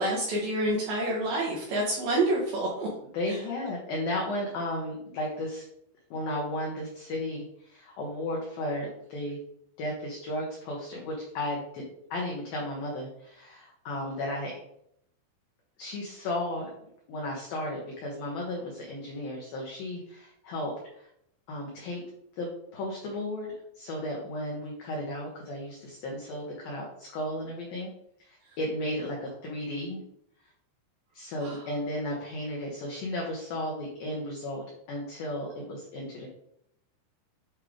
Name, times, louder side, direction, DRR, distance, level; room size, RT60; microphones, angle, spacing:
voice 1, 0.0-2.9 3.3-3.4 28.5-28.6 31.4-31.7, right 1 dB, 75° right, -3 dB, 2.2 m, -28 dB
voice 2, 3.1-5.6 6.1-9.4 9.8-11.9 12.1-14.5 15.8-16.7 17.1-21.1 21.5-22.0 22.4-27.9 28.2-30.0 31.1-36.3, left 1 dB, 75° left, -2 dB, 2.1 m, -34 dB
8.3 x 3.2 x 5.0 m, 0.74 s
omnidirectional pair, 5.7 m